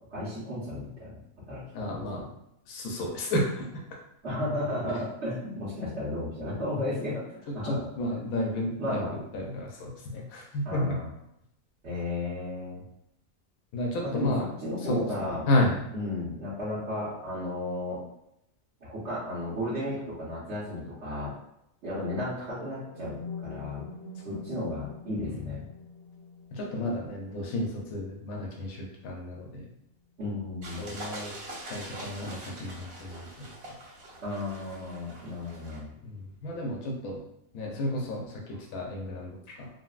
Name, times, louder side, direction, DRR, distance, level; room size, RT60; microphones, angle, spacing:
voice 1, 0.1-1.2 1.5-1.6 1.9-2.3 4.2-7.9 8.8-9.1 10.6-11.1 11.8-12.8 14.0-15.4 15.9-18.0 18.8-21.3 21.8-23.8 24.2-25.6 30.2-30.9 34.2-35.9, left 1 dB, 55° right, -11 dB, 1.1 m, -34 dB
voice 2, 1.7-2.3 2.7-3.7 7.6-11.0 13.7-14.5 14.8-15.8 25.2-25.4 26.5-29.7 30.8-31.3 31.7-33.5 36.0-37.2 37.5-39.7, left 1 dB, 85° left, -1 dB, 1.1 m, -32 dB
sound 1, 22.4-30.4, left 4 dB, 65° left, 0.8 m, -46 dB
sound 2, 30.6-35.8, right 1 dB, 80° right, 1.3 m, -43 dB
3.8 x 2.0 x 2.4 m, 0.81 s
omnidirectional pair, 1.5 m